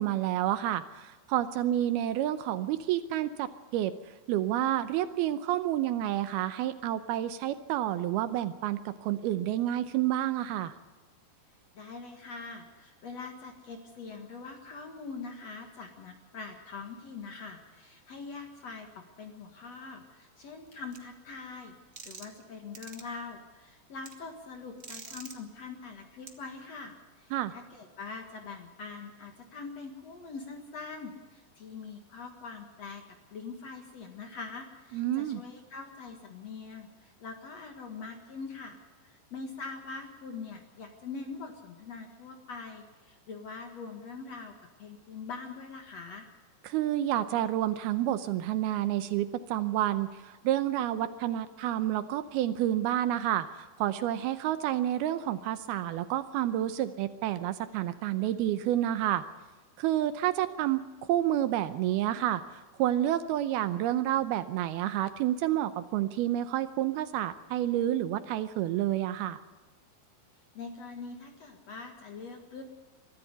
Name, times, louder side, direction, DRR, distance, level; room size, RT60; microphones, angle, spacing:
voice 1, 0.0-3.9 4.3-10.7 27.3-27.5 34.9-35.4 46.6-59.2 59.8-69.4, right 12 dB, 80° right, 12 dB, 2.5 m, -29 dB
voice 2, 11.7-21.7 22.0-33.0 33.3-44.5 44.8-46.3 70.5-72.6, left 4 dB, 50° left, 5 dB, 2.2 m, -43 dB
sound 1, 20.9-21.0 22.0-22.4 22.7-23.0 24.0-24.1 24.8-25.3 26.3-26.4, right 4 dB, 50° right, 0.9 m, -45 dB
23.0 x 14.0 x 8.1 m, 1.3 s
omnidirectional pair, 4.8 m